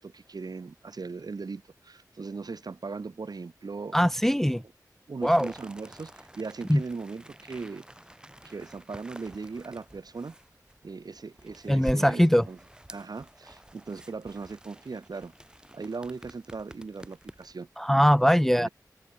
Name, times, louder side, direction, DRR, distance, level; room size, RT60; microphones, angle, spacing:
voice 1, 0.0-4.0 4.5-4.6 5.1-7.8 8.4-10.3 10.8-12.6 12.9-15.3 15.7-17.7 18.5-18.7, right 4 dB, 70° right, 3.5 m, -39 dB
voice 2, 3.9-4.6 5.2-5.5 6.7-6.8 11.7-12.5 17.8-18.7, equal, 5° left, 0.5 m, -21 dB
sound 1, 5.2-17.6, right 1 dB, 10° right, 5.7 m, -48 dB
wide cardioid pair, 90°, 7 cm